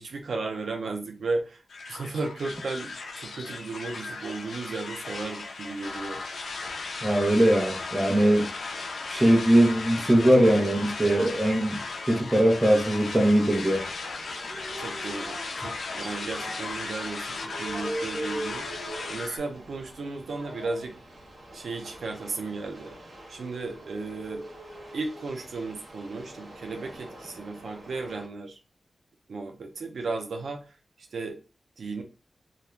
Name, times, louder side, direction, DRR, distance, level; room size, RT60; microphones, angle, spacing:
voice 1, 0.0-1.6 1.9-6.2 14.8-21.2 21.5-23.0 23.3-24.5 24.9-28.6 29.3-31.4 31.8-32.0, right 3 dB, 75° right, 0.4 m, -35 dB
sound 1, 1.7-19.4, left 3 dB, 85° left, 0.4 m, -36 dB
voice 2, 7.0-8.5 9.1-11.8 12.1-13.8, right 1 dB, 15° right, 0.5 m, -21 dB
sound 2, 12.8-28.3, right 1 dB, 50° right, 1.0 m, -42 dB
2.3 x 2.0 x 3.0 m
wide cardioid pair, 145°, 0 cm